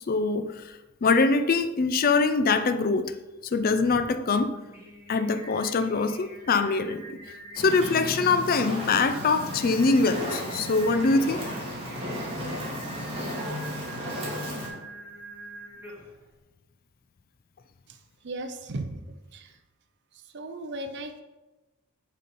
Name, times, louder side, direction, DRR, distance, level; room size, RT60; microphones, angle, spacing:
voice 1, 0.1-0.7 1.0-3.1 3.4-4.5 5.1-7.0 7.6-11.4, left 4 dB, 40° left, 10 dB, 0.4 m, -23 dB
Singing, 4.5-16.2, right 1 dB, 10° right, 2.1 m, -46 dB
Fire, 7.6-14.7, equal, 25° right, 2.2 m, -34 dB
voice 2, 17.9-19.0 19.3-19.6 20.1-21.2, right 2 dB, 55° right, 7 dB, 0.6 m, -37 dB
6.6 x 5.5 x 5.4 m, 1.1 s
head